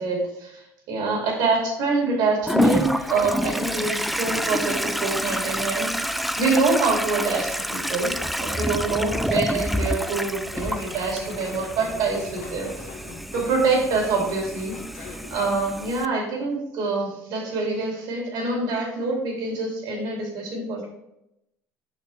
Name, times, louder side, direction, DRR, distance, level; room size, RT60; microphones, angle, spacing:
voice 1, 0.0-8.1 8.4-12.9 13.3-20.9, right 3 dB, 65° right, 0 dB, 2.5 m, -25 dB
Toilet flush, 2.5-16.1, equal, ahead, 0.3 m, -28 dB
sound 1, 9.8-15.3, left 3 dB, 80° left, 1.4 m, -42 dB
6.5 x 5.6 x 3.3 m, 0.83 s
hypercardioid pair, 80°, 8 cm